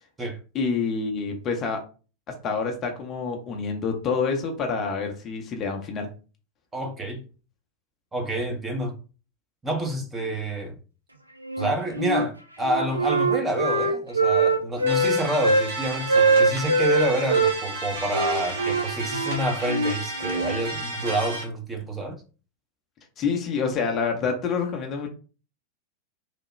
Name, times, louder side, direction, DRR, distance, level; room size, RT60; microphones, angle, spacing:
voice 1, 0.5-1.8 2.3-6.1 23.2-25.1, left 5 dB, 30° left, 0.7 m, -27 dB
voice 2, 6.7-7.2 8.1-9.0 9.6-10.8 11.6-22.2, right 1 dB, 15° right, 0.8 m, -28 dB
Wind instrument woodwind instrument, 11.4-12.3 12.6-15.7 16.1-17.5 18.1-20.6, right 2 dB, 80° right, 0.4 m, -22 dB
sound 1, 14.9-21.4, right 2 dB, 60° right, 1.0 m, -33 dB
3.2 x 2.2 x 3.1 m
figure-of-eight pair, 90°, 0 cm